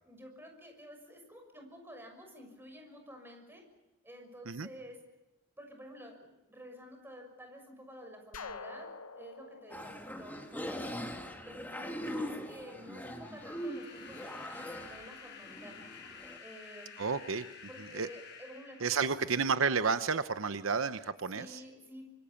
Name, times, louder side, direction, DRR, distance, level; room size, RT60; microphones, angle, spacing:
voice 1, 0.0-3.6 4.0-5.0 5.6-8.9 9.1-11.0 11.4-15.8 16.4-16.9 17.7-19.1 21.3-22.0, equal, 10° right, 4 dB, 6.4 m, -50 dB
sound 1, 8.3-11.1, left 4 dB, 90° left, 1.3 m, -47 dB
sound 2, 9.7-16.4, equal, 10° left, 2.4 m, -41 dB
sound 3, 12.6-19.6, left 6 dB, 55° left, 7.4 m, -52 dB
voice 2, 17.0-17.4 17.9-18.1 18.8-21.6, right 5 dB, 75° right, 11 dB, 0.9 m, -31 dB
26.0 x 24.5 x 7.1 m, 1.0 s
head